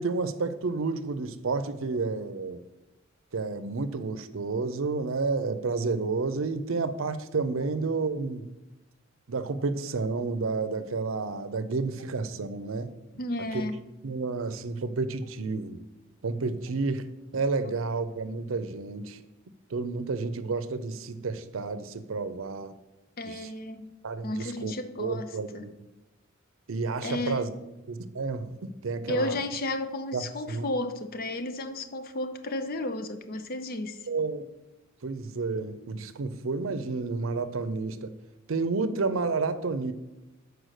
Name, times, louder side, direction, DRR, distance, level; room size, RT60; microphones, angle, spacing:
voice 1, 0.0-2.6 3.3-8.5 9.3-12.9 13.5-13.7 14.0-15.8 16.2-17.1 17.3-19.2 19.7-22.8 23.3-23.5 24.0-24.7 25.0-25.7 26.7-27.5 27.9-29.4 30.1-30.7 34.1-34.4 35.0-38.1 38.5-39.9, right 4 dB, 85° right, 0.6 m, -30 dB
voice 2, 13.2-13.8 23.2-23.9 24.2-25.7 27.0-27.5 29.1-34.0, left 1 dB, 50° left, 0.6 m, -33 dB
6.3 x 4.8 x 6.4 m
head